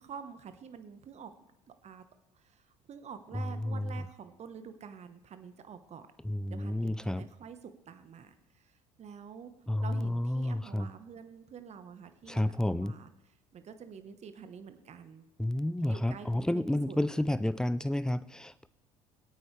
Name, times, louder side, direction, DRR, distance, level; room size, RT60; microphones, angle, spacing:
voice 1, 0.0-1.3 1.8-2.0 2.3-6.1 6.5-9.5 9.8-15.2 15.8-17.0, right 7 dB, 35° right, 10 dB, 1.2 m, -48 dB
voice 2, 6.3-7.2 9.7-10.9 12.3-12.9 15.4-18.7, left 1 dB, 5° left, 17 dB, 0.5 m, -30 dB
23.0 x 8.4 x 3.3 m, 0.94 s
hypercardioid pair, 65°, 18 cm